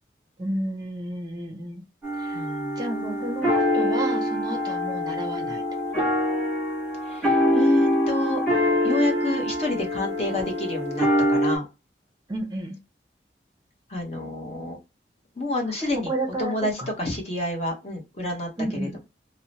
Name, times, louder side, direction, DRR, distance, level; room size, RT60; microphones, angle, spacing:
voice 1, 0.4-1.8 2.2-2.4 2.8-5.6 12.3-12.8 15.8-16.9 18.6-19.0, right 1 dB, 25° right, 0.5 m, -31 dB
sound 1, 2.0-11.6, equal, ahead, 1.3 m, -24 dB
voice 2, 2.3-2.8 7.0-8.4 8.8-11.6 13.9-14.8 15.4-16.1 16.4-19.0, left 2 dB, 35° left, 0.9 m, -29 dB
2.8 x 2.0 x 2.7 m
head